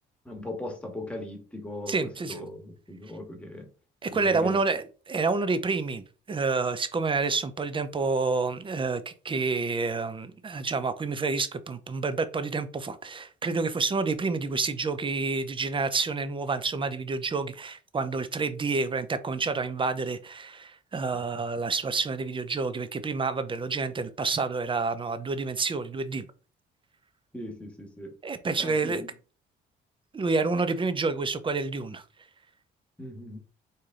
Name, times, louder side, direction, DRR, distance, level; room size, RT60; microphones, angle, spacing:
voice 1, 0.2-3.7 4.1-4.6 21.1-21.2 27.3-28.1 28.6-29.1 33.0-33.4, left 1 dB, 5° left, 1.6 m, -39 dB
voice 2, 1.9-2.4 4.0-26.2 28.2-29.0 30.1-32.0, right 4 dB, 25° right, 0.6 m, -29 dB
4.1 x 3.3 x 3.8 m
cardioid pair, 90°, 20 cm